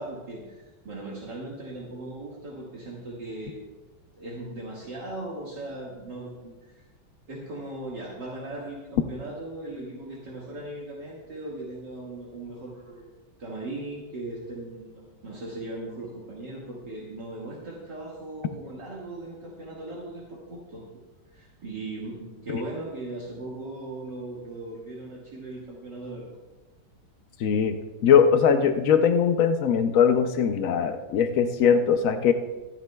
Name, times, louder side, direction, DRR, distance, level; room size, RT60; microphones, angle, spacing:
voice 1, 0.0-3.6 4.2-6.8 7.3-13.1 13.4-20.8 21.3-26.3, right 2 dB, 60° right, -5 dB, 2.3 m, -38 dB
voice 2, 27.4-27.8 28.0-32.3, left 7 dB, 90° left, 7 dB, 0.7 m, -20 dB
25.0 x 9.7 x 2.3 m, 1.2 s
omnidirectional pair, 2.2 m